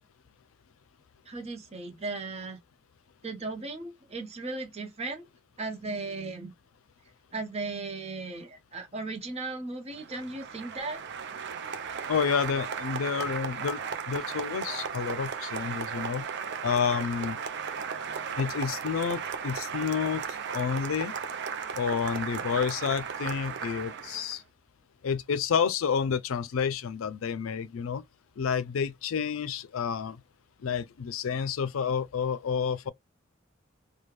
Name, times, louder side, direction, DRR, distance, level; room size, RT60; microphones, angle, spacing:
voice 1, 1.3-2.6 3.2-5.3 5.6-6.5 7.3-11.0, right 3 dB, 30° right, 0.9 m, -36 dB
Applause, 9.9-24.4, right 6 dB, 60° right, 0.5 m, -36 dB
voice 2, 12.1-13.8 14.1-16.3 16.6-17.4 18.4-20.2 20.5-21.1 21.7-24.4 25.0-28.0 28.4-30.2 30.6-32.9, left 6 dB, 80° left, 0.4 m, -29 dB
3.3 x 2.3 x 3.1 m
head